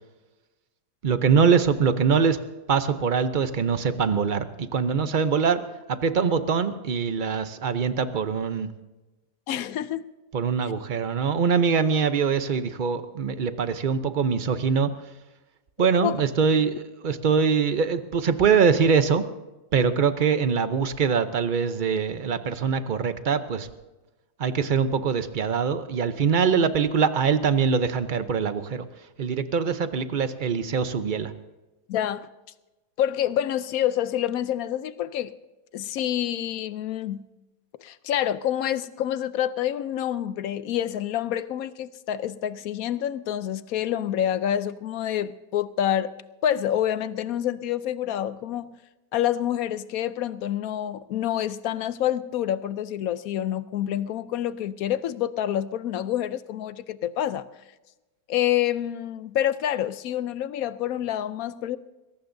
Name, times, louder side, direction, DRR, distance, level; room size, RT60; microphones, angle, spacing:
voice 1, 1.0-2.4 2.7-5.6 5.9-8.7 10.3-14.9 15.8-16.7 17.0-19.2 19.7-23.7 24.4-28.9 29.2-31.3, right 6 dB, 45° right, 10 dB, 0.6 m, -23 dB
voice 2, 9.5-10.1 15.8-16.2 31.9-32.3 33.0-35.3 35.7-37.2 37.8-46.1 46.4-48.8 49.1-57.5 58.3-61.8, left 11 dB, 70° left, 14 dB, 1.0 m, -27 dB
21.5 x 17.5 x 2.7 m, 1.1 s
omnidirectional pair, 1.7 m